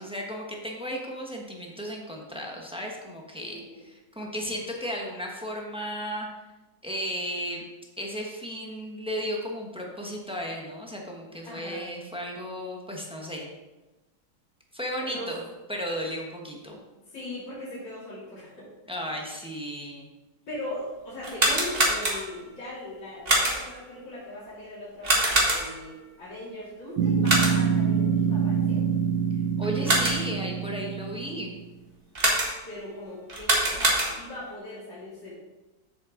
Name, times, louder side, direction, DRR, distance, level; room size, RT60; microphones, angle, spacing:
voice 1, 0.0-6.3 6.8-7.6 8.0-13.5 14.7-15.4 15.7-16.8 18.9-20.1 29.6-31.6, equal, 5° right, 0 dB, 0.9 m, -34 dB
voice 2, 3.4-3.8 11.4-11.8 15.0-15.3 17.1-18.7 20.5-28.8 29.8-30.1 32.7-35.3, left 1 dB, 80° left, -9 dB, 3.7 m, -39 dB
sound 1, 21.2-22.5 23.3-23.8 25.0-25.9 27.2-27.8 29.6-30.4 32.2-32.8 33.3-34.4, right 1 dB, 35° right, 1.8 m, -25 dB
sound 2, 27.0-31.6, right 7 dB, 80° right, 1.5 m, -25 dB
7.8 x 7.1 x 3.8 m, 1.1 s
omnidirectional pair, 1.9 m